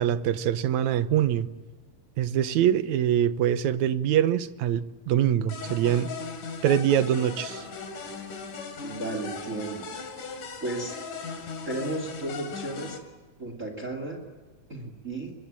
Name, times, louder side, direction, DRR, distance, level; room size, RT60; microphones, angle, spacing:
voice 1, 0.0-1.5 2.2-6.1 6.6-7.6, right 10 dB, 75° right, 2.2 m, -24 dB
sound 1, 5.5-13.0, left 4 dB, 90° left, 4.4 m, -38 dB
voice 2, 8.8-9.9 10.6-11.0 11.6-13.0 13.4-14.2 14.7-15.3, right 2 dB, 25° right, 2.6 m, -34 dB
23.5 x 23.5 x 8.9 m
omnidirectional pair, 3.5 m